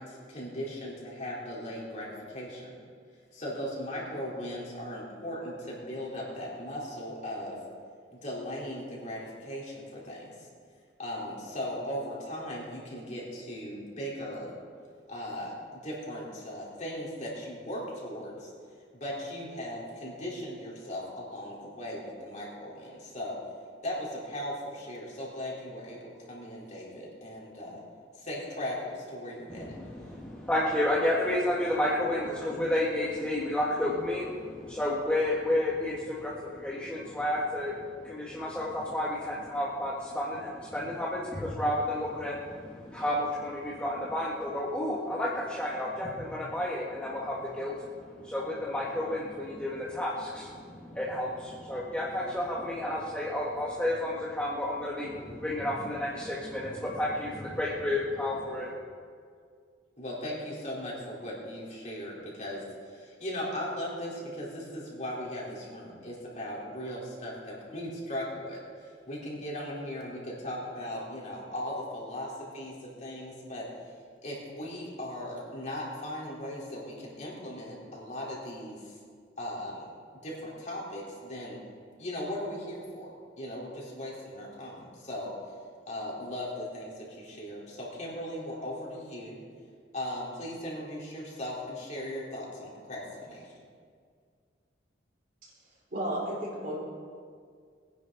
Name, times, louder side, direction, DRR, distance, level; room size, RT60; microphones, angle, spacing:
voice 1, 0.0-2.8 3.3-7.6 8.1-10.3 11.0-14.5 15.1-18.5 18.9-23.4 23.8-27.8 28.2-29.8 60.0-73.7 74.2-78.9 79.4-79.9 80.2-81.6 82.0-83.1 83.4-85.3 85.9-89.4 89.9-93.5, left 1 dB, 40° left, -5 dB, 3.9 m, -38 dB
voice 2, 29.5-58.7, left 1 dB, 5° left, -6 dB, 1.6 m, -31 dB
voice 3, 95.9-96.8, right 1 dB, 50° right, -4 dB, 4.3 m, -33 dB
21.0 x 10.0 x 4.1 m, 2.1 s
head